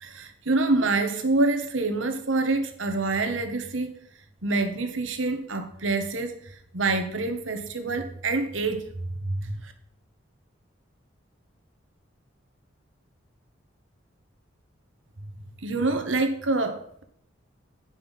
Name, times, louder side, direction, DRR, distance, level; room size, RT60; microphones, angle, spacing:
voice 1, 0.0-4.0 4.4-8.9 9.2-9.7 15.2-15.3 15.6-17.0, right 3 dB, 90° right, 1.4 m, -26 dB
9.1 x 5.6 x 5.7 m
head